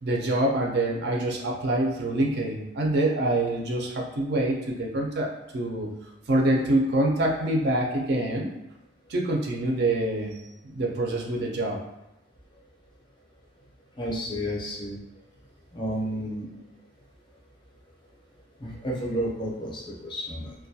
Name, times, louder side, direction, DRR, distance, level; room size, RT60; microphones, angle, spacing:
voice 1, 0.0-5.9 6.3-8.5 9.1-10.4 10.6-11.8, right 1 dB, 55° right, 0 dB, 0.4 m, -25 dB
voice 2, 14.0-15.0 15.7-16.5 18.6-20.5, equal, 25° left, -3 dB, 0.5 m, -31 dB
2.2 x 2.1 x 2.6 m, 0.96 s
head